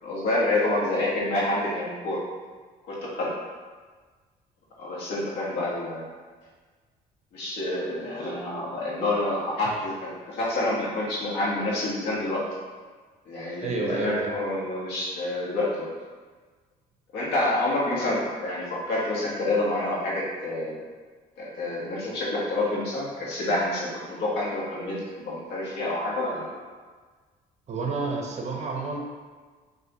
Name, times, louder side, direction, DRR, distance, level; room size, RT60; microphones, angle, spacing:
voice 1, 0.0-2.2 2.8-3.3 4.8-6.1 7.3-12.4 13.3-15.9 17.1-20.8 21.4-26.6, left 2 dB, 85° left, -5 dB, 1.3 m, -28 dB
voice 2, 13.6-14.3 27.7-29.0, right 3 dB, 40° right, 1 dB, 0.7 m, -30 dB
5.5 x 2.7 x 2.9 m, 1.4 s
cardioid pair, 110°, 17 cm